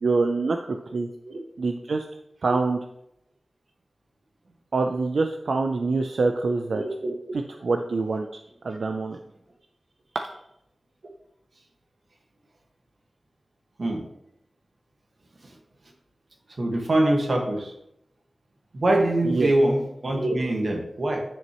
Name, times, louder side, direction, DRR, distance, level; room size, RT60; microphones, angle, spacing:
voice 1, 0.0-1.1 1.6-2.0 2.4-2.8 4.7-6.8 7.6-8.3 8.6-9.2 19.3-19.5, right 3 dB, 90° right, 5 dB, 0.5 m, -25 dB
voice 2, 6.7-7.2 13.8-14.0 16.6-17.7 18.7-21.2, right 1 dB, 65° right, 1 dB, 1.6 m, -24 dB
10.0 x 6.2 x 3.0 m, 0.80 s
wide cardioid pair, 75°, 0 cm